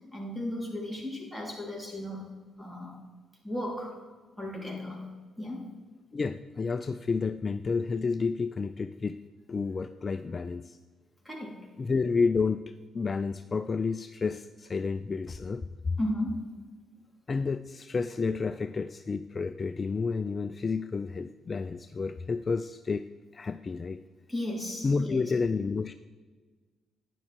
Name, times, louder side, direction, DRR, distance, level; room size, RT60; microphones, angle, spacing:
voice 1, 0.1-2.3 2.6-3.0 3.4-4.0 4.4-5.1 5.4-5.7 11.3-11.7 16.0-16.5 24.3-25.2, left 1 dB, 5° right, -1 dB, 3.8 m, -35 dB
voice 2, 6.1-9.2 9.5-10.8 11.8-16.0 17.3-23.1 23.3-24.0 24.8-25.9, left 4 dB, 35° left, 9 dB, 0.4 m, -30 dB
12.0 x 9.8 x 4.6 m, 1.4 s
cardioid pair, 90°, 0 cm